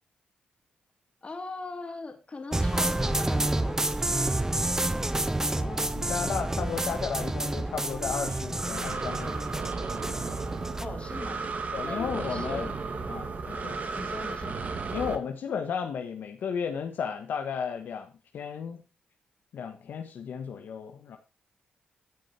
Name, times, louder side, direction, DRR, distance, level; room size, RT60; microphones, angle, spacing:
voice 1, 1.2-5.2 10.8-11.6 11.8-12.8 13.4-14.6, left 3 dB, 35° left, 2.7 m, -41 dB
sound 1, 2.5-10.9, right 1 dB, 15° right, 0.9 m, -29 dB
voice 2, 5.4-9.6 11.7-12.7 13.1-13.7 14.9-18.8 19.5-21.2, left 7 dB, 75° left, 1.3 m, -34 dB
Breathing, 8.0-15.2, right 4 dB, 50° right, 2.1 m, -34 dB
13.0 x 6.4 x 4.4 m
supercardioid pair, 55°, 3 cm